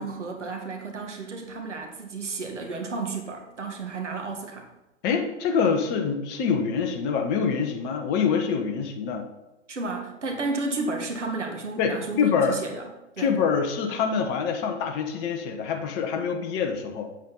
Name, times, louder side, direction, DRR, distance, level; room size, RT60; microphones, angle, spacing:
voice 1, 0.0-4.7 9.7-12.8 13.2-13.3, right 3 dB, 75° right, 2 dB, 1.9 m, -32 dB
voice 2, 5.0-9.3 11.8-12.6 13.2-17.1, left 6 dB, 30° left, 4 dB, 1.3 m, -25 dB
8.4 x 8.1 x 4.1 m, 1.0 s
figure-of-eight pair, 110°, 36 cm